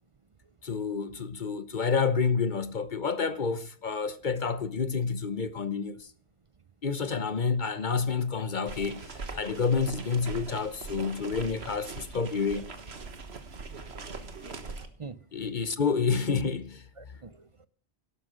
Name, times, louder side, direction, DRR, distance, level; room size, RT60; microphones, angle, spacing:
voice 1, 0.6-6.0 6.8-9.0 9.3-12.6 15.3-16.8, left 5 dB, 45° left, 1.1 m, -29 dB
sound 1, 8.6-14.9, right 4 dB, 65° right, 1.7 m, -41 dB
voice 2, 14.3-15.2 17.0-17.7, right 4 dB, 35° right, 0.6 m, -46 dB
13.0 x 11.5 x 6.3 m
omnidirectional pair, 1.2 m